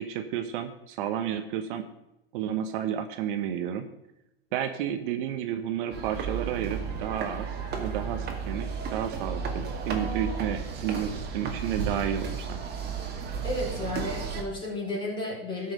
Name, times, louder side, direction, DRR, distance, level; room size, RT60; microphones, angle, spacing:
voice 1, 0.0-1.9 2.3-3.9 4.5-12.6, right 9 dB, 60° right, 8 dB, 1.0 m, -31 dB
sound 1, 5.9-14.4, right 5 dB, 35° right, 2.2 m, -33 dB
voice 2, 13.4-15.7, left 2 dB, 15° left, -3 dB, 4.9 m, -32 dB
13.0 x 5.9 x 6.4 m, 0.89 s
hypercardioid pair, 115°, 30 cm